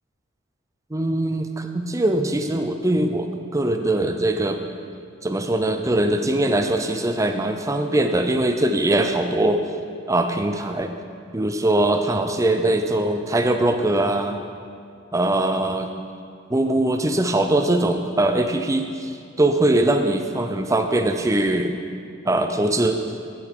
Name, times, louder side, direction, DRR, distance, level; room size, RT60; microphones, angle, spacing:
voice 1, 0.9-4.6 5.2-9.6 10.1-10.9 11.3-14.4 15.1-15.9 16.5-19.1 19.4-21.8 22.3-23.0, right 1 dB, 15° right, 6 dB, 0.5 m, -21 dB
14.5 x 5.6 x 4.8 m, 2.3 s
head